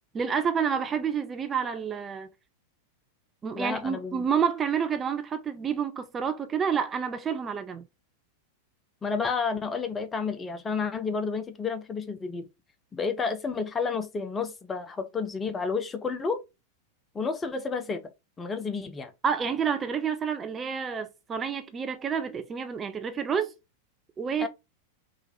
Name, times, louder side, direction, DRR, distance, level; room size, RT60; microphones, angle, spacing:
voice 1, 0.1-2.3 3.4-7.8 19.2-23.5 24.2-24.5, right 7 dB, 20° right, 0.6 m, -29 dB
voice 2, 3.5-4.2 9.0-12.5 12.9-16.4 17.1-18.1 18.4-19.1 24.4-24.5, left 5 dB, 15° left, 0.7 m, -31 dB
3.7 x 3.3 x 3.0 m
figure-of-eight pair, 90°, 0 cm